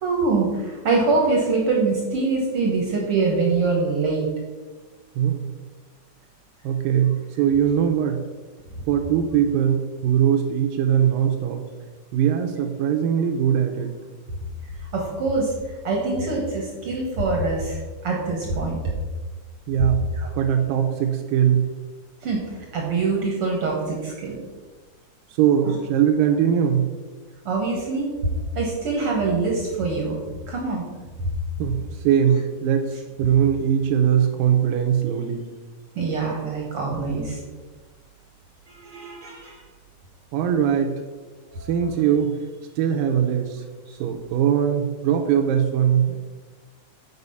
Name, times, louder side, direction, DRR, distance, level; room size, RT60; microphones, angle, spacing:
voice 1, 0.0-4.3 14.9-15.5 15.8-18.8 20.1-20.3 22.2-22.4 22.7-24.4 25.6-25.8 27.4-28.1 28.5-30.2 30.4-30.8 35.9-37.4 38.7-39.6 41.5-41.7 43.9-44.0, right 3 dB, 60° right, -1 dB, 1.5 m, -24 dB
voice 2, 5.2-5.5 6.6-8.2 8.9-11.6 12.1-13.9 19.7-20.0 20.4-21.7 25.3-26.9 31.6-35.4 40.3-40.9 41.6-42.4 42.8-43.6 44.0-46.2, right 9 dB, 85° right, 2 dB, 2.3 m, -21 dB
8.2 x 4.9 x 5.5 m, 1.3 s
omnidirectional pair, 4.0 m